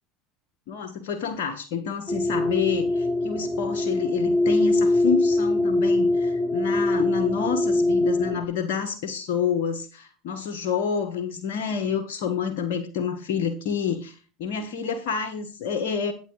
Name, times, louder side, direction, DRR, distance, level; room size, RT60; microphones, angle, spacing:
voice 1, 0.7-16.1, left 6 dB, 65° left, 5 dB, 1.5 m, -28 dB
sound 1, 2.1-8.4, left 2 dB, 10° left, 1.8 m, -23 dB
11.5 x 9.1 x 3.3 m, 0.34 s
hypercardioid pair, 80°, 0 cm